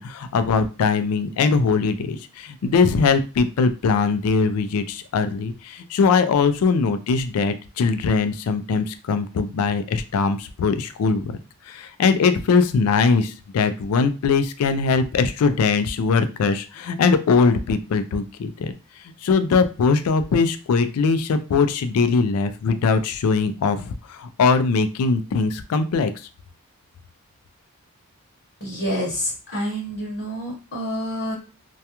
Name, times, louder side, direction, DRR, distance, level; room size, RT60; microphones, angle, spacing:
voice 1, 0.0-11.4 11.7-18.7 19.2-26.1, left 4 dB, 80° left, 11 dB, 0.3 m, -21 dB
voice 2, 28.6-31.3, equal, 55° left, -4 dB, 0.9 m, -28 dB
2.3 x 2.2 x 2.8 m, 0.33 s
head